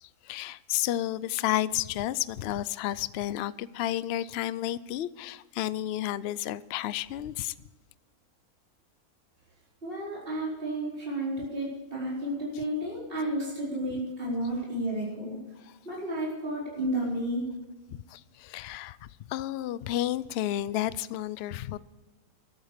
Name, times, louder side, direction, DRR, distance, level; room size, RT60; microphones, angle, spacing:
voice 1, 0.0-7.5 17.9-21.8, left 13 dB, 65° left, 0.6 m, -31 dB
voice 2, 9.8-15.4 15.8-17.5, right 1 dB, 35° right, 5.1 m, -32 dB
14.5 x 12.0 x 5.0 m
omnidirectional pair, 1.6 m